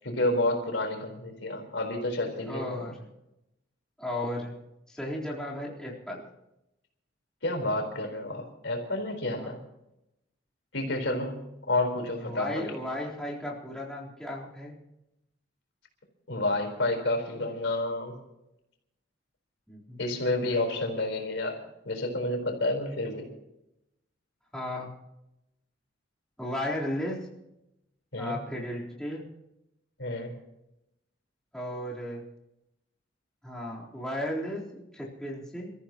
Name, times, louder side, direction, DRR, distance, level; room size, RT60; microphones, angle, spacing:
voice 1, 0.0-2.9 7.4-9.6 10.7-12.7 16.3-18.1 20.0-23.3 28.1-28.4 30.0-30.3, left 2 dB, 75° left, 3 dB, 4.2 m, -30 dB
voice 2, 2.5-3.0 4.0-4.6 4.9-6.2 9.4-9.5 12.2-14.8 19.7-20.0 24.5-24.9 26.4-27.3 28.2-29.2 31.5-32.2 33.4-35.7, left 1 dB, 5° left, -5 dB, 3.9 m, -35 dB
29.5 x 14.5 x 3.0 m, 0.87 s
head